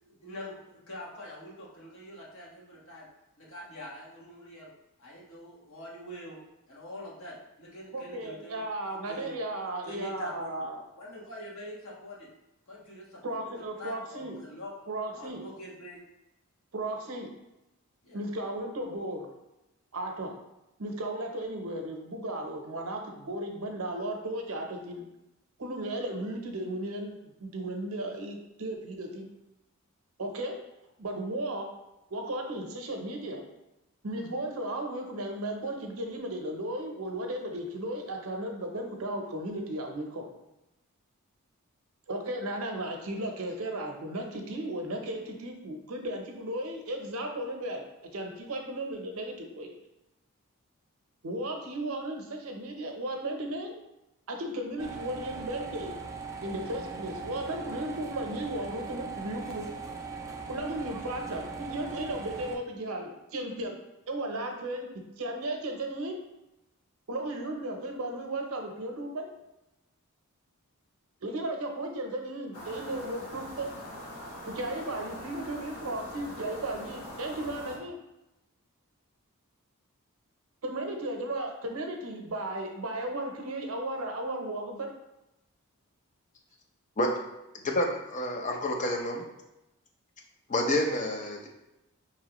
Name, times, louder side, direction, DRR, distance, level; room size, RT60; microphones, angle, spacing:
voice 1, 0.0-3.1 3.4-4.7 5.0-6.4 6.7-8.6 9.1-9.3 9.8-10.5 11.0-12.3 12.7-13.4 13.8-14.7 15.1-16.0 18.0-18.2, left 1 dB, 60° left, -5 dB, 1.4 m, -44 dB
voice 2, 7.9-10.8 13.2-14.3 14.9-15.4 16.7-17.3 18.1-19.3 19.9-20.3 20.8-25.0 25.6-27.1 27.4-29.3 30.2-30.6 31.0-31.7 32.1-33.4 34.0-40.3 42.1-47.8 48.1-49.7 51.2-53.7 54.3-55.9 56.4-59.6 60.5-63.7 64.1-64.9 65.2-66.2 67.1-69.3 71.2-73.7 74.4-78.0 80.6-84.9, right 1 dB, 70° right, 3 dB, 0.7 m, -35 dB
sound 1, 54.8-62.6, right 4 dB, 15° right, 0.4 m, -40 dB
sound 2, 72.5-77.8, equal, 90° left, 1.1 m, -43 dB
voice 3, 87.6-89.2 90.5-91.5, left 1 dB, 35° left, 1 dB, 0.6 m, -28 dB
5.5 x 3.0 x 2.9 m, 0.93 s
head